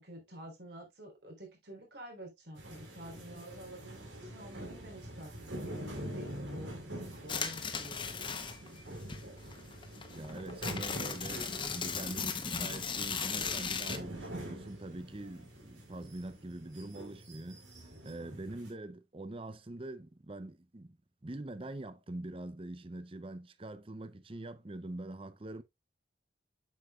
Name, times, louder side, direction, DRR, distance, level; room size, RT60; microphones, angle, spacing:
voice 1, 0.0-8.8, equal, 65° right, 3.8 m, -50 dB
sound 1, 2.6-18.7, right 1 dB, 90° right, 3.3 m, -45 dB
sound 2, 7.3-8.8 9.1-14.0, left 6 dB, 25° left, 0.9 m, -37 dB
voice 2, 10.1-17.6 18.0-21.0 21.2-25.6, right 1 dB, 30° right, 0.6 m, -44 dB
8.2 x 6.8 x 2.4 m
head